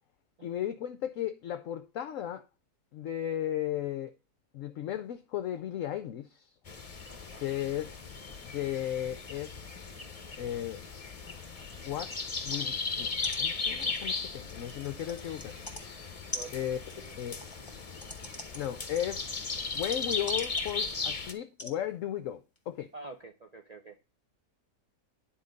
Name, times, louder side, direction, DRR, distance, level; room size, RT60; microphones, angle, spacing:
voice 1, 0.4-2.4 2.9-4.1 4.5-6.5 7.4-7.9 8.4-9.8 10.4-10.8 11.8-12.1 12.4-15.6 16.5-16.8 17.2-17.4 18.5-19.3 19.7-22.9, left 11 dB, 65° left, 0.8 m, -35 dB
sound 1, 6.7-21.3, left 4 dB, 30° left, 0.7 m, -37 dB
voice 2, 7.1-7.5 16.3-16.5 16.9-17.2 22.9-24.0, right 3 dB, 85° right, 0.3 m, -47 dB
sound 2, 13.2-13.4 13.7-15.8 16.3-21.1 21.6-21.8 22.6-22.7, left 2 dB, 15° left, 1.2 m, -44 dB
10.0 x 4.3 x 5.2 m
omnidirectional pair, 1.8 m